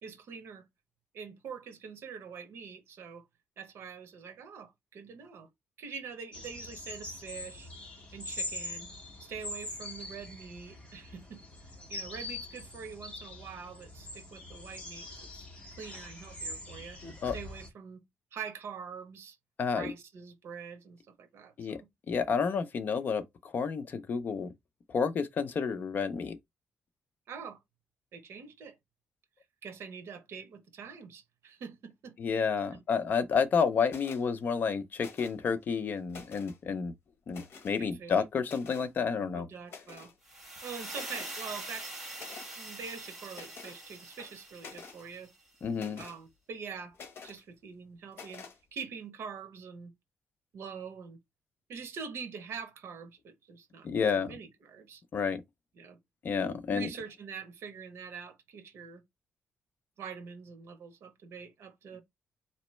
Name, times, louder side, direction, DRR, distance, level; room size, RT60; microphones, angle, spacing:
voice 1, 0.0-0.7 1.1-3.2 3.6-5.5 5.8-7.7 8.1-8.9 9.2-11.4 11.9-15.5 15.8-17.0 17.3-18.0 18.3-19.4 19.7-21.9 27.3-27.6 28.1-28.8 29.6-32.2 32.7-32.8 37.8-38.1 39.3-40.1 40.6-41.9 42.6-45.3 46.0-47.0 47.2-49.9 50.5-51.2 51.7-53.9 54.1-55.0 55.8-56.0 56.7-59.0 60.0-62.0, right 6 dB, 70° right, 0.9 m, -44 dB
sound 1, 6.3-17.7, left 2 dB, 25° left, 1.8 m, -43 dB
voice 2, 19.6-19.9 21.6-21.8 22.1-24.5 24.9-26.4 32.2-36.9 37.3-39.5 45.6-46.0 53.8-54.4 55.1-55.4 56.2-56.9, left 6 dB, 45° left, 0.6 m, -30 dB
sound 2, 33.9-34.2 35.0-35.5 35.9-36.6 37.3-37.8 38.4-38.9 39.7-40.2 40.6-40.7 40.9-41.4 42.1-42.5 43.3-43.8 44.2-45.0 45.7-46.2 46.9-47.4 48.1-48.6, left 5 dB, 60° left, 1.1 m, -48 dB
sound 3, 40.2-45.3, right 1 dB, 5° right, 2.1 m, -44 dB
4.2 x 3.0 x 3.1 m
wide cardioid pair, 160°, 4 cm